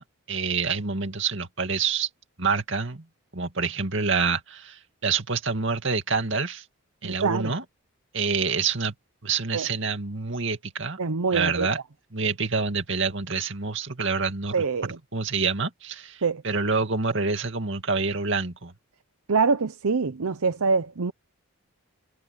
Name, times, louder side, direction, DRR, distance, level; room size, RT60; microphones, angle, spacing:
voice 1, 0.0-2.1 2.4-3.0 3.3-6.6 7.0-7.6 8.1-8.9 9.2-11.0 11.3-11.8 12.1-18.7, right 4 dB, 55° right, 2.4 m, -27 dB
voice 2, 7.0-7.5 9.5-9.7 11.0-11.7 14.5-14.9 16.2-16.4 19.3-21.1, right 4 dB, 85° right, 0.8 m, -24 dB
head